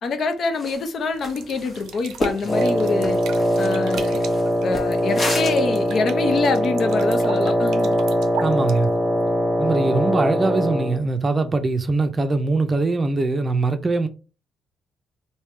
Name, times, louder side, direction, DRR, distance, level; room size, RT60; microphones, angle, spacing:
voice 1, 0.0-3.2 3.6-4.2 4.6-8.0, left 4 dB, 60° left, 0.6 m, -25 dB
sound 1, 0.6-0.9 1.2-5.8, left 2 dB, 35° left, 1.1 m, -31 dB
sound 2, 1.1-9.4, right 8 dB, 85° right, 0.5 m, -38 dB
Wind instrument woodwind instrument, 2.4-11.0, equal, 5° right, 1.4 m, -22 dB
voice 2, 8.4-8.9 9.6-14.1, right 3 dB, 30° right, 0.5 m, -22 dB
3.4 x 2.7 x 3.2 m
cardioid pair, 90°, 0 cm